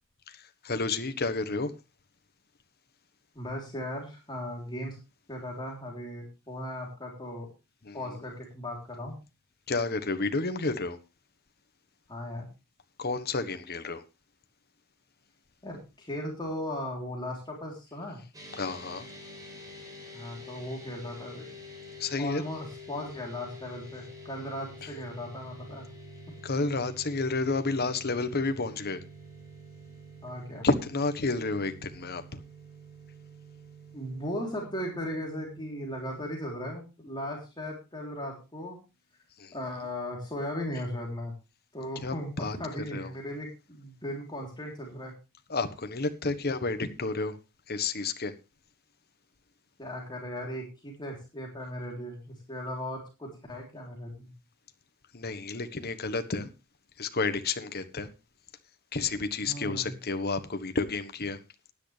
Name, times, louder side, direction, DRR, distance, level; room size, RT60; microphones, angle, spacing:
voice 1, 0.3-1.7 7.8-8.0 9.7-11.0 13.0-14.0 18.6-19.1 22.0-22.4 24.8-24.9 26.4-29.0 30.6-32.4 39.4-39.5 42.0-42.6 42.9-43.1 45.5-47.4 47.7-48.3 55.1-56.5 57.0-58.1 58.9-61.4, left 3 dB, 45° left, 1.3 m, -30 dB
voice 2, 3.4-5.0 5.3-7.5 7.9-9.2 12.1-12.5 15.6-18.2 20.1-21.5 22.2-25.9 30.2-30.7 33.9-38.8 39.5-41.3 41.7-42.3 42.6-45.1 49.8-54.3 59.4-59.9, left 1 dB, 20° left, 3.5 m, -37 dB
sound 1, 18.3-36.7, equal, 15° right, 4.4 m, -48 dB
15.5 x 10.5 x 3.4 m
head